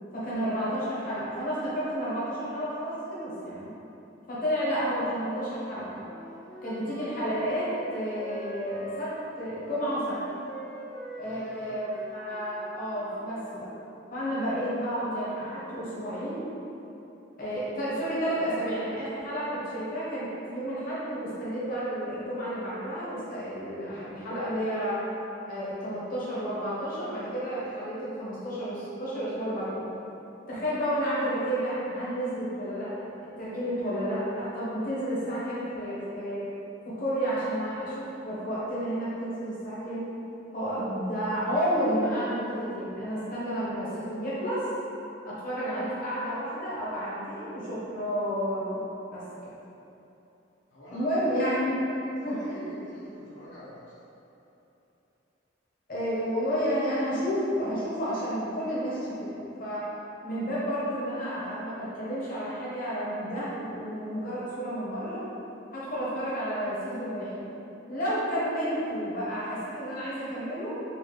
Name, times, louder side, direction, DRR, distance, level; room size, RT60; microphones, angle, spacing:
voice 1, 0.1-3.7 4.3-6.0 6.6-10.2 11.1-13.7 14.1-16.4 17.4-25.0 25.5-29.9 30.5-33.1 33.4-36.4 36.8-40.1 40.5-44.7 45.2-48.8 49.1-49.5 50.9-51.8 52.2-52.7 55.9-59.9 60.2-65.2 65.7-67.5 67.9-70.8, equal, 50° left, -9 dB, 1.0 m, -31 dB
Wind instrument woodwind instrument, 6.0-13.4, equal, 5° left, 0.6 m, -44 dB
voice 2, 11.2-11.8 50.7-51.2 52.3-53.8, equal, 75° left, -10 dB, 0.8 m, -48 dB
4.3 x 2.5 x 3.0 m, 3.0 s
head